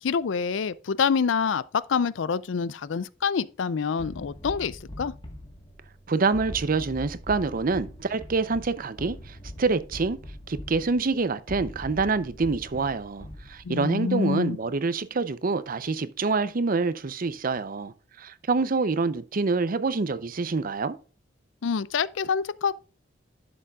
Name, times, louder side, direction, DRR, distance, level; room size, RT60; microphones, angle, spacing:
voice 1, 0.0-5.1 13.6-14.6 21.6-22.7, left 6 dB, 85° left, 0.5 m, -26 dB
sound 1, 4.0-13.9, left 1 dB, 25° left, 1.4 m, -42 dB
voice 2, 6.1-10.2 10.5-21.0, right 4 dB, 50° right, 0.6 m, -26 dB
11.0 x 6.7 x 2.4 m
head